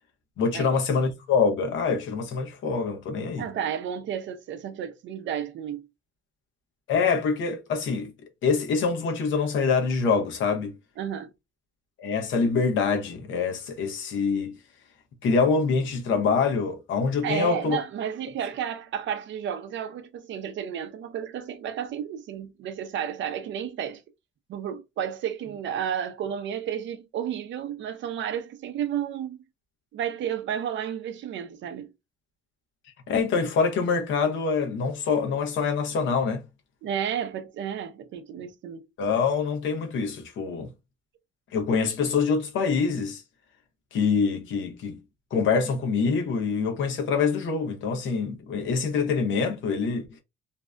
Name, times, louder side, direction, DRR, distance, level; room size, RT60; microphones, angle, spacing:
voice 1, 0.4-3.5 6.9-8.1 8.4-10.8 12.0-14.6 15.2-17.8 33.1-36.4 39.0-40.7 41.5-43.2 43.9-45.0 45.3-50.1, left 5 dB, 75° left, 0.7 m, -25 dB
voice 2, 3.4-5.9 11.0-11.3 17.2-24.0 24.5-29.4 29.9-31.9 36.8-38.8, right 9 dB, 70° right, 0.5 m, -32 dB
2.6 x 2.1 x 2.3 m
cardioid pair, 90°, 20 cm